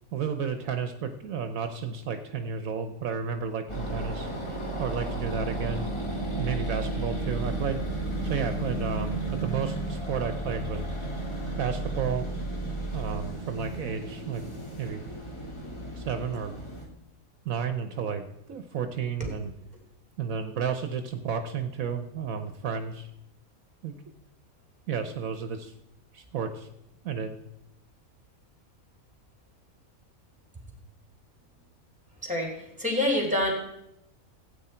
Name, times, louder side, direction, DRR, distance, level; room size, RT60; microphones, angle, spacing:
voice 1, 0.1-4.3 4.8-5.9 6.4-7.8 8.2-10.8 11.6-12.3 12.9-15.1 15.9-16.6 17.4-18.2 18.5-19.5 20.2-23.1 23.8-23.9 24.9-25.7 26.1-26.7 27.0-27.4, right 6 dB, 75° right, 7 dB, 1.2 m, -32 dB
sound 1, 3.7-16.8, right 1 dB, 20° left, 1.9 m, -33 dB
voice 2, 32.2-32.5 32.8-33.5, left 1 dB, 5° right, 0 dB, 3.3 m, -26 dB
16.0 x 8.8 x 4.4 m, 0.83 s
omnidirectional pair, 1.5 m